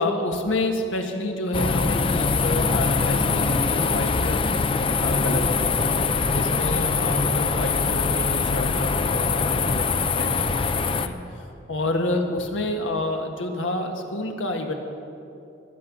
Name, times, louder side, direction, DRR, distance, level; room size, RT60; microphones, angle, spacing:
voice 1, 0.0-4.4 4.9-5.7 6.3-14.7, left 1 dB, 80° left, 3 dB, 1.6 m, -28 dB
sound 1, 1.5-11.1, left 4 dB, 30° left, 0.5 m, -23 dB
21.0 x 8.8 x 6.0 m, 2.7 s
head